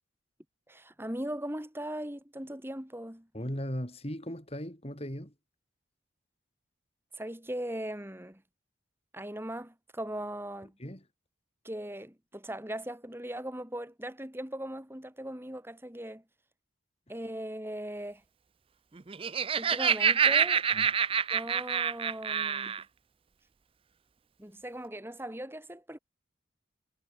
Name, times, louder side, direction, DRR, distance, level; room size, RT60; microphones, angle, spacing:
voice 1, 0.7-3.3 7.1-8.4 9.1-10.8 11.6-16.2 17.1-18.2 19.6-20.7 21.3-22.8 24.4-26.0, right 1 dB, 10° right, 2.2 m, -39 dB
voice 2, 3.3-5.3 10.8-11.0 20.7-20.9, equal, 30° left, 7.0 m, -37 dB
Laughter, 19.0-22.8, right 7 dB, 25° right, 0.5 m, -27 dB
head